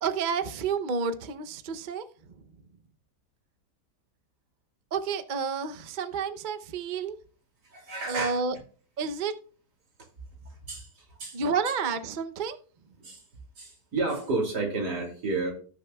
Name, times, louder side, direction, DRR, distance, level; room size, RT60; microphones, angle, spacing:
voice 1, 0.0-2.0 4.9-7.2 8.1-8.5 9.0-9.3 11.3-12.6, right 5 dB, 50° right, 0.5 m, -30 dB
voice 2, 7.7-8.4 10.7-11.4 13.0-13.2 13.6-15.5, right 3 dB, 70° right, 3.3 m, -31 dB
17.0 x 6.8 x 2.3 m
omnidirectional pair, 1.9 m